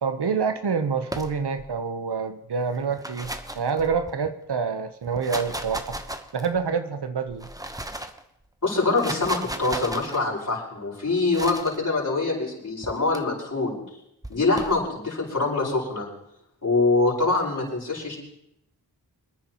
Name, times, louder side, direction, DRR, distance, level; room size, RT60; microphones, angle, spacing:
voice 1, 0.0-6.0 6.3-7.5, right 5 dB, 75° right, 8 dB, 1.1 m, -27 dB
sound 1, 1.1-1.7 2.8-4.3 5.0-6.6 7.3-8.2 8.8-10.2 11.3-11.8 12.8-13.2 14.2-14.8, right 1 dB, 10° right, 1.1 m, -35 dB
voice 2, 8.6-13.8 14.3-16.1 16.6-18.2, left 3 dB, 50° left, -4 dB, 5.5 m, -24 dB
27.0 x 9.8 x 3.1 m, 0.77 s
cardioid pair, 45°, 41 cm